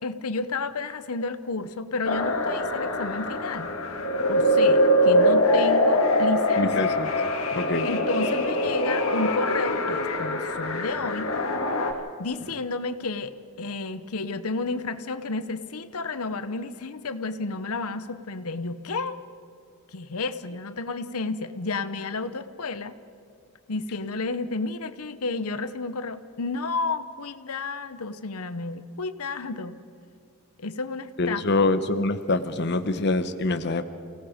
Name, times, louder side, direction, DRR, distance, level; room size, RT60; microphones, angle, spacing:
voice 1, 0.0-3.7 4.3-6.9 7.8-11.3 12.2-19.2 19.9-23.0 23.7-29.8 30.6-31.7, left 3 dB, 85° left, 11 dB, 0.9 m, -31 dB
sound 1, 2.0-11.9, left 1 dB, 70° left, 2.1 m, -23 dB
voice 2, 6.6-7.1 7.5-7.9 31.2-33.8, left 2 dB, 50° left, 9 dB, 0.9 m, -25 dB
29.5 x 17.5 x 5.1 m, 2.4 s
head